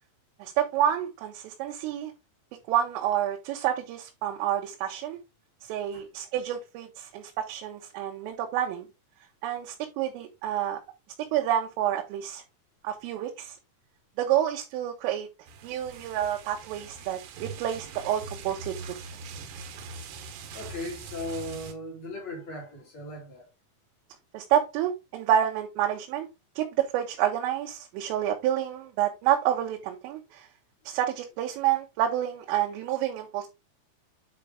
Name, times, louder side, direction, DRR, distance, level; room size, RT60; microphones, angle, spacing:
voice 1, 0.4-2.1 2.7-5.2 5.6-8.9 9.4-10.8 11.3-12.4 12.8-13.6 14.2-15.3 15.6-19.0 24.3-26.3 26.6-30.5 30.9-33.5, right 11 dB, 85° right, 3.6 m, -28 dB
sound 1, 15.5-21.7, right 4 dB, 70° right, 2.8 m, -42 dB
voice 2, 20.5-23.5, left 1 dB, 35° left, 3.7 m, -37 dB
9.0 x 4.5 x 3.6 m
omnidirectional pair, 5.7 m